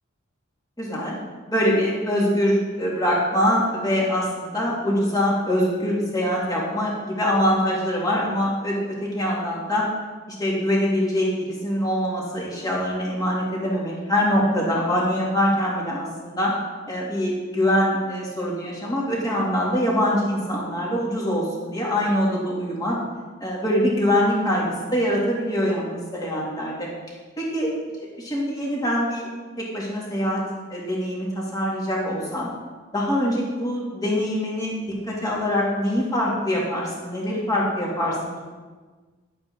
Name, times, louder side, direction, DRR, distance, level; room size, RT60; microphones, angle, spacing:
voice 1, 0.8-1.1 1.5-9.9 10.3-16.5 16.9-23.0 23.4-26.9 27.4-27.7 28.0-29.3 29.6-30.4 30.7-32.5 32.9-34.8 35.0-38.4, equal, 20° left, -4 dB, 2.4 m, -24 dB
10.5 x 8.6 x 3.7 m, 1.4 s
head